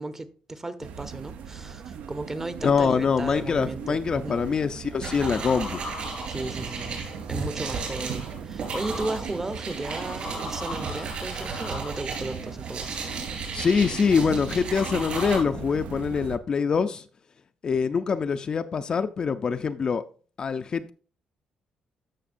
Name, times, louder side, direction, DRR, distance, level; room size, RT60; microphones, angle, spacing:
voice 1, 0.0-4.4 6.3-12.9, right 2 dB, 15° right, 0.7 m, -35 dB
sound 1, 0.8-16.4, right 7 dB, 70° right, 0.6 m, -39 dB
voice 2, 2.6-5.8 13.5-17.1 17.6-20.0 20.4-20.9, left 5 dB, 35° left, 0.4 m, -24 dB
sound 2, 5.0-15.4, right 3 dB, 55° right, 3.6 m, -34 dB
14.0 x 5.7 x 2.5 m
cardioid pair, 140°, 2 cm